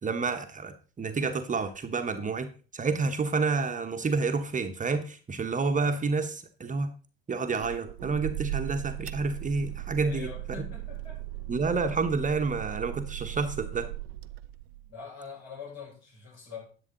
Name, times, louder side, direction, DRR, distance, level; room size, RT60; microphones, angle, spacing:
voice 1, 0.0-2.5 2.7-6.9 7.3-10.3 11.5-13.9, right 4 dB, 25° right, 7 dB, 1.2 m, -29 dB
sound 1, 7.5-14.9, right 15 dB, 75° right, 0.6 m, -38 dB
voice 2, 10.0-11.2 14.9-16.6, left 6 dB, 55° left, -2 dB, 6.0 m, -44 dB
11.0 x 7.5 x 3.9 m, 0.37 s
hypercardioid pair, 65°, 31 cm